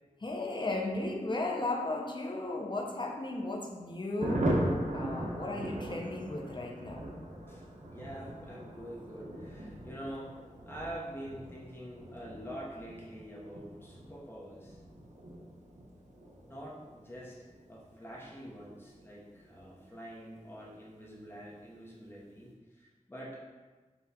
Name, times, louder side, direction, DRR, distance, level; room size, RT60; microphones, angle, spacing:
voice 1, 0.2-7.1 9.7-9.8, left 2 dB, 35° left, 1 dB, 0.6 m, -35 dB
Thunder, 4.2-20.3 20.6-20.7 21.0-21.1 21.4-21.8, right 1 dB, 65° right, 0.8 m, -39 dB
voice 2, 7.5-14.8 16.4-17.4 17.7-23.4, equal, 15° left, -5 dB, 0.9 m, -46 dB
4.1 x 2.4 x 4.1 m, 1.3 s
wide cardioid pair, 85°, 14 cm